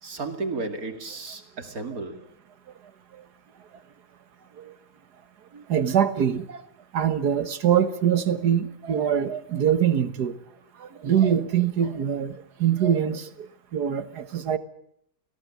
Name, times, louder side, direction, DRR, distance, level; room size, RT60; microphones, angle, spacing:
voice 1, 0.0-2.2, right 3 dB, 65° right, 2.8 m, -33 dB
voice 2, 5.5-6.6 6.9-10.4 10.8-12.3 12.6-14.6, right 9 dB, 90° right, 1.9 m, -24 dB
18.5 x 17.5 x 9.7 m
omnidirectional pair, 1.7 m